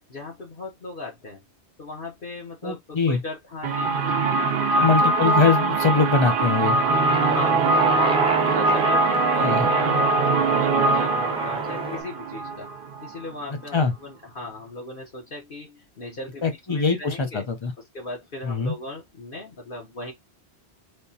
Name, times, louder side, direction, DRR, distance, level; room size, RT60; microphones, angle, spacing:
voice 1, 0.1-1.4 1.8-5.3 7.2-7.7 8.0-12.7 13.0-17.4 17.9-20.1, left 2 dB, 55° left, 1.2 m, -38 dB
voice 2, 2.6-3.2 4.8-6.8 9.4-9.7 13.7-13.9 16.4-17.7 18.4-18.7, left 4 dB, 35° left, 0.6 m, -22 dB
sound 1, 3.6-13.3, right 3 dB, 60° right, 0.7 m, -22 dB
Aircraft, 6.9-12.0, right 1 dB, 5° right, 0.7 m, -29 dB
3.5 x 2.9 x 2.7 m
omnidirectional pair, 1.1 m